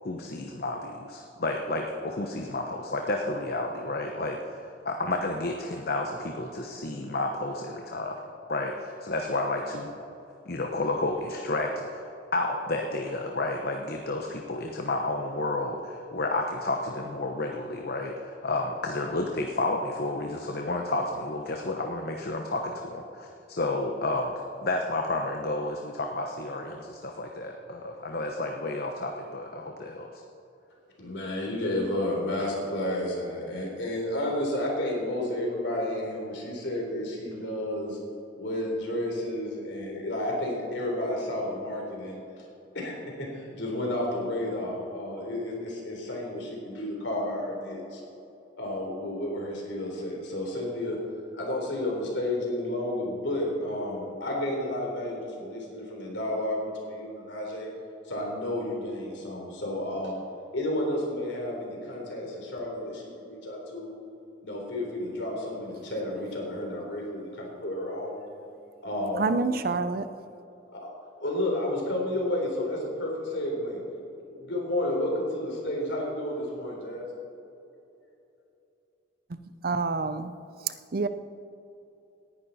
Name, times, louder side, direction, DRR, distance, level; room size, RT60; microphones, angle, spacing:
voice 1, 0.0-8.2 8.5-9.9 10.5-12.0 12.3-24.3 24.6-30.2, left 2 dB, 55° left, 2 dB, 1.0 m, -31 dB
voice 2, 31.0-38.0 38.4-42.2 42.7-48.0 48.6-51.0 51.3-57.7 58.1-60.1 60.5-63.9 64.4-68.2 68.8-69.3 70.7-70.9 71.2-73.8 74.3-77.0, left 1 dB, 70° left, -1 dB, 3.7 m, -31 dB
voice 3, 69.2-70.1 79.3-80.3 80.6-81.1, right 4 dB, 50° right, 12 dB, 0.6 m, -28 dB
18.0 x 11.0 x 4.2 m, 2.8 s
head